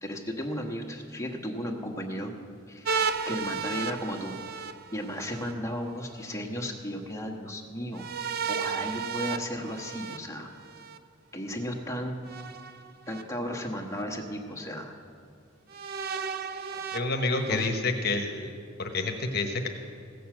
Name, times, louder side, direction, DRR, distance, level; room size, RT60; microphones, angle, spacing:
voice 1, 0.0-2.3 2.7-3.0 3.3-4.4 4.9-8.1 8.5-10.5 11.3-12.2 13.1-14.9 17.5-17.7, equal, 15° left, 1 dB, 1.3 m, -34 dB
sound 1, 2.8-5.5 7.9-11.0 12.3-13.2 14.0-14.1 15.7-17.7, right 6 dB, 50° right, 0.5 m, -34 dB
voice 2, 16.9-18.5 18.8-19.7, left 3 dB, 55° left, 4 dB, 1.1 m, -28 dB
16.0 x 6.7 x 7.6 m, 2.3 s
head